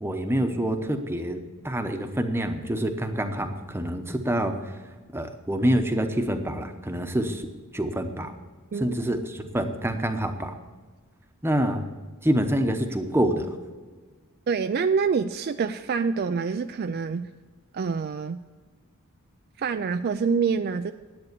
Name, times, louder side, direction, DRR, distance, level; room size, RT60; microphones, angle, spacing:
voice 1, 0.0-4.6 5.1-7.5 7.7-8.3 8.8-10.5 11.4-11.9 12.2-13.5, right 1 dB, 10° right, 6 dB, 0.9 m, -26 dB
voice 2, 14.5-17.3 17.7-18.4 19.6-20.9, right 5 dB, 45° right, 9 dB, 0.3 m, -26 dB
11.0 x 8.4 x 6.8 m, 1.4 s
head